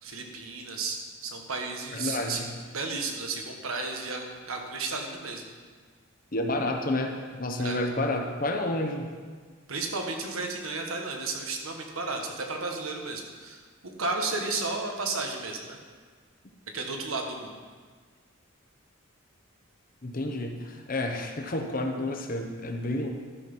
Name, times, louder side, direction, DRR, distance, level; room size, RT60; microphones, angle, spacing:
voice 1, 0.0-2.4 2.7-5.4 7.6-7.8 9.7-15.8 16.7-17.5, right 3 dB, 85° right, 2 dB, 1.4 m, -33 dB
voice 2, 1.9-2.5 6.3-9.1 20.0-23.1, left 1 dB, 40° left, 4 dB, 0.9 m, -30 dB
12.5 x 6.0 x 5.4 m, 1.6 s
head